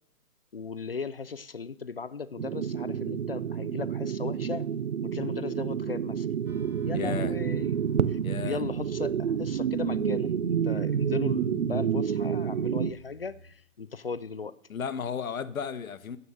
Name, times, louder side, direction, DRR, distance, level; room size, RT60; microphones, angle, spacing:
voice 1, 0.5-4.7 5.0-6.3 6.8-7.8 8.1-14.5, left 5 dB, 45° left, 0.4 m, -37 dB
sound 1, 2.4-12.9, right 8 dB, 55° right, 0.5 m, -29 dB
sound 2, 6.5-13.5, right 2 dB, 85° right, 3.1 m, -48 dB
voice 2, 6.9-7.4 8.2-8.6 14.7-16.2, left 7 dB, 70° left, 1.0 m, -34 dB
9.8 x 7.9 x 6.9 m
hypercardioid pair, 165°, 43 cm